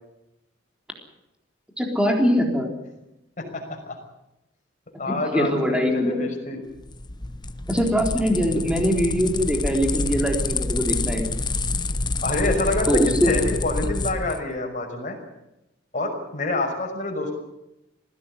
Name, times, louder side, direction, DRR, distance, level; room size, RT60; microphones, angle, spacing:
voice 1, 1.8-2.7 5.1-6.2 7.7-11.3 12.9-13.3, equal, 5° right, 2 dB, 3.8 m, -22 dB
voice 2, 3.4-4.0 5.0-6.6 12.2-15.2 15.9-17.4, left 2 dB, 45° left, 2 dB, 6.0 m, -27 dB
sound 1, 6.8-14.4, left 3 dB, 25° left, 1.0 m, -27 dB
20.0 x 16.5 x 9.9 m, 0.89 s
head